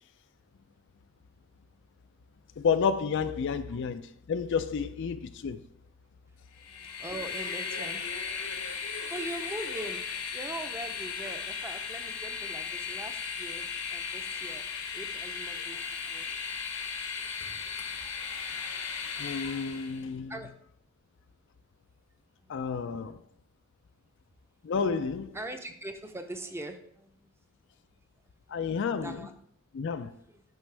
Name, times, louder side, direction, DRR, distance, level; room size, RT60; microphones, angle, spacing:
voice 1, 2.6-5.6 19.2-20.3 22.5-23.2 24.6-25.4 28.5-29.3 29.7-30.1, left 6 dB, 60° left, 0.4 m, -30 dB
Train, 6.6-20.0, left 6 dB, 85° left, 1.2 m, -36 dB
voice 2, 6.6-10.1 10.3-14.7 14.9-16.3 20.3-20.5 22.4-22.7 23.0-23.1 25.3-27.3 27.9-28.0 28.5-28.6 29.0-29.3 30.0-30.4, right 1 dB, 10° right, 0.6 m, -42 dB
9.3 x 5.2 x 3.3 m
head